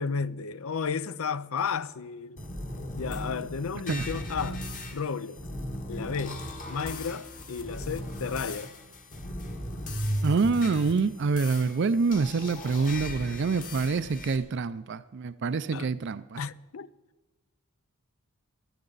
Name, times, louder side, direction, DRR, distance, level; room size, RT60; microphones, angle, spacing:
voice 1, 0.0-2.4 2.9-4.7 4.9-5.4 5.9-8.7 15.7-15.9 16.4-16.9, left 5 dB, 70° left, 0.5 m, -33 dB
sound 1, 2.4-14.4, left 1 dB, 35° left, 1.5 m, -37 dB
voice 2, 10.2-16.4, right 4 dB, 50° right, 0.4 m, -26 dB
19.5 x 12.0 x 4.0 m
head